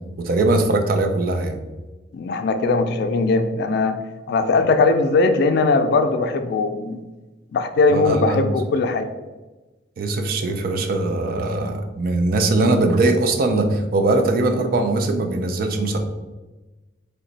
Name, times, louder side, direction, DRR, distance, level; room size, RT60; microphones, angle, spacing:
voice 1, 0.2-1.6 7.9-8.5 10.0-16.0, right 2 dB, 50° right, 5 dB, 0.4 m, -21 dB
voice 2, 2.1-4.0 4.3-7.0 7.5-9.1, left 3 dB, 60° left, 7 dB, 0.3 m, -19 dB
2.9 x 2.1 x 3.9 m, 1.2 s
head